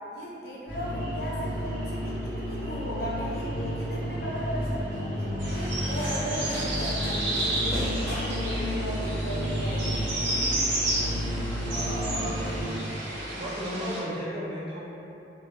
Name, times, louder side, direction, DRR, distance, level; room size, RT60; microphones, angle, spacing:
voice 1, 0.1-10.1, equal, 55° left, -5 dB, 0.4 m, -36 dB
sound 1, 0.7-12.7, equal, 65° right, 0.9 m, -31 dB
sound 2, 5.4-14.0, right 1 dB, 85° right, 0.6 m, -32 dB
sound 3, 5.5-13.0, equal, 10° left, 0.9 m, -41 dB
voice 2, 11.7-12.4 13.3-14.9, equal, 30° right, -10 dB, 0.5 m, -34 dB
2.3 x 2.0 x 2.8 m, 2.8 s
head